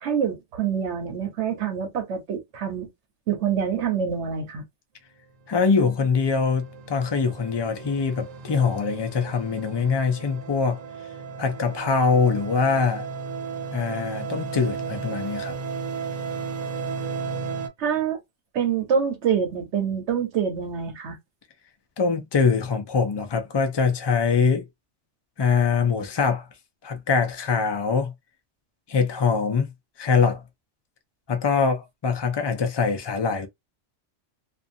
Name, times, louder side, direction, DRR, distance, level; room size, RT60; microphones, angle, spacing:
voice 1, 0.0-2.9 3.3-4.6 17.8-18.2 18.5-21.2, right 7 dB, 75° right, 1.1 m, -26 dB
sound 1, 5.2-17.7, right 5 dB, 50° right, 0.5 m, -35 dB
voice 2, 5.5-10.8 11.4-13.1 13.7-15.5 22.0-24.6 25.4-26.5 26.8-28.1 28.9-29.7 30.0-30.4 31.3-33.5, left 5 dB, 40° left, 0.4 m, -23 dB
2.6 x 2.5 x 2.5 m
omnidirectional pair, 1.2 m